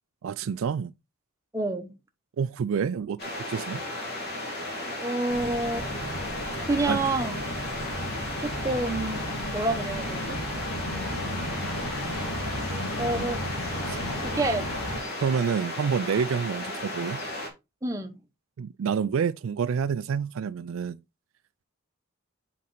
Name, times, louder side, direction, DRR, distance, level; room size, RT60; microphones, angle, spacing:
voice 1, 0.2-0.9 2.4-3.8 6.9-7.0 13.9-14.0 15.2-17.2 18.6-21.0, right 6 dB, 70° right, 0.3 m, -28 dB
voice 2, 1.5-1.9 4.9-5.9 6.6-7.4 8.4-10.4 13.0-13.4 14.2-14.7 17.8-18.1, right 2 dB, 15° right, 0.8 m, -28 dB
sound 1, 3.2-17.5, left 1 dB, 45° left, 2.1 m, -35 dB
sound 2, 5.3-15.0, equal, 80° left, 2.1 m, -34 dB
7.5 x 4.2 x 3.8 m
head